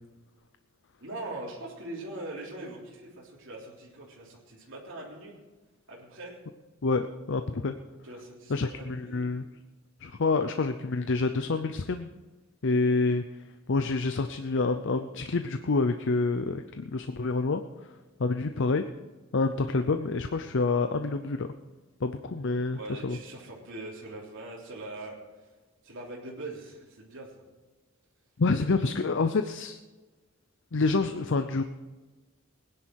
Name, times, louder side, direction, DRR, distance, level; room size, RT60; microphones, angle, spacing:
voice 1, 1.0-5.3 5.9-6.4 8.0-9.3 22.7-25.5 25.8-27.4 28.6-28.9, right 2 dB, 60° right, -4 dB, 3.4 m, -42 dB
voice 2, 6.8-7.7 8.5-9.5 10.0-12.1 12.6-13.2 13.7-17.6 18.2-18.8 19.3-21.5 22.0-23.2 28.4-29.8 30.7-31.6, left 3 dB, 60° left, 8 dB, 0.6 m, -27 dB
19.0 x 10.5 x 4.8 m, 1.2 s
head